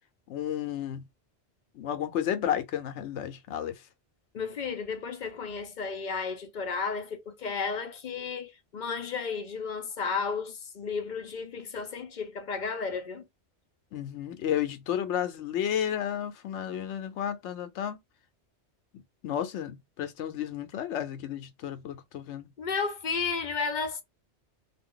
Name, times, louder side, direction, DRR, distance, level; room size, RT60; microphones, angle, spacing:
voice 1, 0.3-1.0 1.8-3.8 13.9-18.0 19.2-22.5, left 10 dB, 85° left, 0.9 m, -32 dB
voice 2, 4.3-13.2 22.6-24.0, left 5 dB, 55° left, 0.6 m, -33 dB
2.5 x 2.2 x 3.7 m
omnidirectional pair, 1.2 m